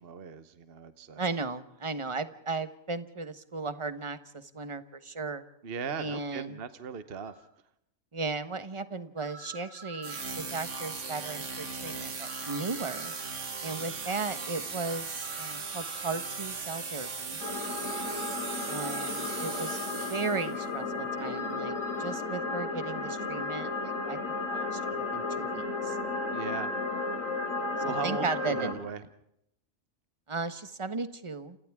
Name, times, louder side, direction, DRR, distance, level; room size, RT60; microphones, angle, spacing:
voice 1, 0.0-1.2 5.6-7.3 13.7-13.9 17.8-18.1 26.3-26.7 27.8-28.3 28.6-29.0, right 6 dB, 50° right, 11 dB, 1.2 m, -38 dB
voice 2, 1.2-5.4 6.0-6.6 8.1-13.1 13.6-17.4 18.7-19.8 20.1-26.0 27.8-28.8 30.3-31.6, right 3 dB, 25° right, 11 dB, 1.2 m, -36 dB
sound 1, 7.2-7.3 9.2-10.3 12.2-13.3 15.2-16.3 18.2-19.3 21.2-22.1, right 3 dB, 20° left, 7.8 m, -47 dB
sound 2, 10.0-20.6, right 4 dB, 65° right, 2.0 m, -38 dB
sound 3, 17.4-28.7, left 3 dB, 75° left, 3.8 m, -34 dB
29.5 x 28.0 x 3.6 m, 0.77 s
omnidirectional pair, 1.4 m